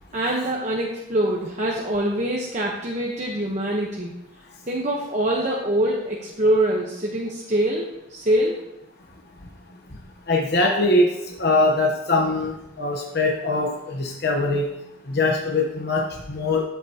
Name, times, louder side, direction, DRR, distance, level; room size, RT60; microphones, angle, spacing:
voice 1, 0.1-4.1 4.7-8.6, right 1 dB, 35° right, -3 dB, 1.1 m, -24 dB
voice 2, 10.3-11.1 11.4-14.7 15.1-16.6, left 2 dB, 50° left, 1 dB, 1.1 m, -22 dB
13.0 x 7.9 x 2.9 m, 0.87 s
head